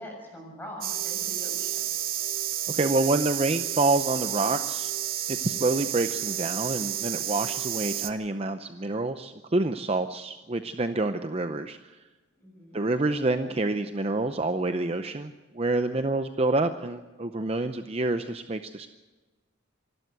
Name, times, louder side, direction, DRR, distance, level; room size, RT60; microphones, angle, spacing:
voice 1, 0.0-1.9 12.4-12.8, left 1 dB, 10° left, -1 dB, 7.1 m, -42 dB
sound 1, 0.8-8.1, right 12 dB, 45° right, 1.1 m, -31 dB
voice 2, 2.7-4.9 5.3-12.0 12.7-18.9, right 2 dB, 30° right, 8 dB, 0.7 m, -27 dB
26.5 x 12.5 x 8.1 m, 1.2 s
head